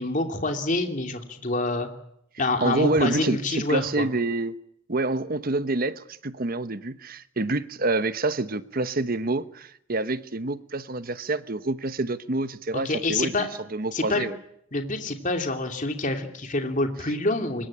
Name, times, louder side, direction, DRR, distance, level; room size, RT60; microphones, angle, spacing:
voice 1, 0.0-1.9 2.4-4.1 12.8-13.5 13.9-14.3 14.7-17.7, left 2 dB, 40° left, 2.8 m, -27 dB
voice 2, 2.6-3.4 3.7-4.5 4.9-14.4, right 2 dB, 45° right, 1.0 m, -27 dB
25.5 x 22.0 x 8.8 m
head